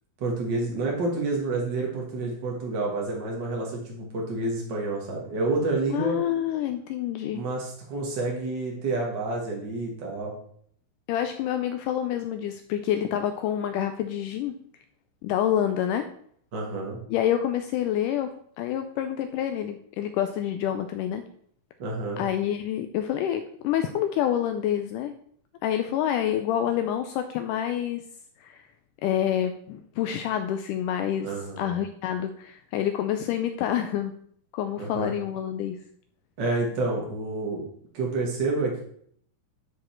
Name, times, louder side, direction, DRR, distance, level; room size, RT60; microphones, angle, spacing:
voice 1, 0.2-6.1 7.3-10.3 16.5-17.0 21.8-22.2 31.2-31.7 34.8-35.1 36.4-37.6 37.9-38.8, right 2 dB, 55° right, -2 dB, 1.3 m, -29 dB
voice 2, 5.9-7.4 11.1-14.5 15.2-16.1 17.1-18.3 18.6-21.2 22.2-25.1 25.6-28.0 28.4-28.6 29.0-34.1 34.5-35.8, left 10 dB, 90° left, 7 dB, 1.8 m, -27 dB
10.5 x 5.1 x 4.4 m, 0.63 s
omnidirectional pair, 4.2 m